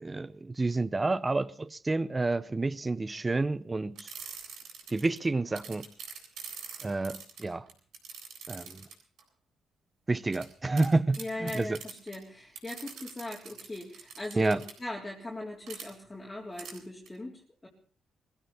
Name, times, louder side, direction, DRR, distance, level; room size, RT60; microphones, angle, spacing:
voice 1, 0.0-4.1 4.9-5.9 6.8-7.7 8.5-8.9 10.1-11.8 14.4-14.6, right 3 dB, 20° right, 0.7 m, -29 dB
sound 1, 4.0-5.2 5.6-9.2 10.3-10.5 10.8-10.9 11.1-12.2 12.6-14.7 15.7-15.9 16.6-16.8 17.1-17.2, right 6 dB, 75° right, 7.7 m, -44 dB
voice 2, 11.2-17.7, left 2 dB, 15° left, 3.4 m, -40 dB
22.0 x 16.0 x 4.2 m
cardioid pair, 90°, 0 cm